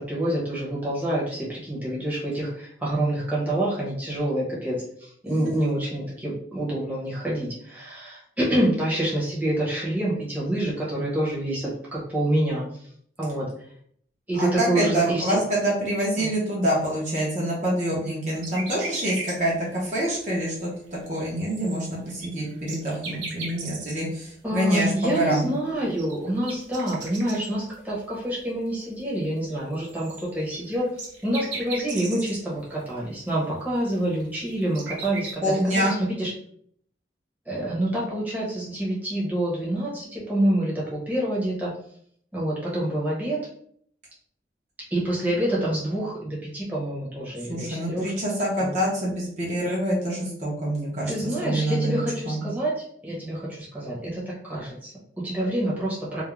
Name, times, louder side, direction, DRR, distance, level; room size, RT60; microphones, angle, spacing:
voice 1, 0.1-12.6 13.2-13.5 14.3-15.4 16.2-16.3 24.4-30.9 31.2-36.3 37.5-41.7 42.3-43.4 44.9-48.1 48.6-48.7 51.1-56.2, right 1 dB, 10° right, -7 dB, 0.8 m, -27 dB
voice 2, 5.3-5.7 14.4-25.5 35.4-35.9 47.5-51.1 51.4-52.4, right 1 dB, 40° right, -4 dB, 0.7 m, -26 dB
sound 1, 18.4-19.4 19.8-19.9 20.4-20.5 20.9-21.0 21.1-24.1 25.4-25.5 25.8-27.7 28.2-28.3 29.5-32.4 32.9-33.0 33.3-33.4 34.0-35.3, right 3 dB, 85° right, 0.7 m, -37 dB
2.4 x 2.0 x 3.0 m, 0.63 s
head